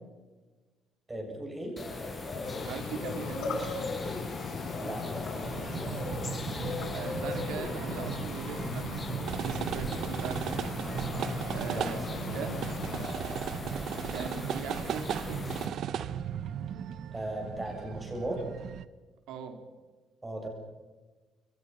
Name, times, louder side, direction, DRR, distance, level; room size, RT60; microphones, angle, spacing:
voice 1, 1.1-1.8 4.8-5.8 11.7-12.4 17.1-18.4 20.2-20.5, right 1 dB, 15° right, 2 dB, 7.7 m, -37 dB
sound 1, 1.8-15.7, left 3 dB, 20° left, 6.4 m, -38 dB
sound 2, 2.4-13.1, left 6 dB, 55° left, 5.1 m, -40 dB
voice 2, 2.6-4.0 6.9-8.9 9.3-10.8 11.5-12.7 14.1-15.5 19.3-19.6, right 6 dB, 90° right, 6 dB, 4.0 m, -40 dB
sound 3, 5.4-18.9, right 9 dB, 55° right, 1.0 m, -36 dB
28.5 x 23.5 x 5.8 m, 1.2 s
cardioid pair, 160°, 0 cm